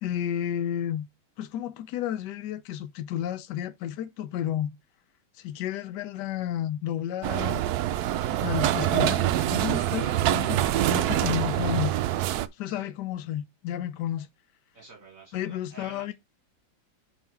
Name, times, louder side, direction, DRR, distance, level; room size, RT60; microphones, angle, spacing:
voice 1, 0.0-1.1 1.4-4.8 5.4-7.6 8.4-11.9 12.6-14.3 15.3-16.1, left 11 dB, 65° left, 1.2 m, -32 dB
sound 1, 7.2-12.5, right 13 dB, 80° right, 0.8 m, -25 dB
voice 2, 14.7-16.1, right 3 dB, 45° right, 1.7 m, -49 dB
5.8 x 4.4 x 4.5 m
omnidirectional pair, 2.2 m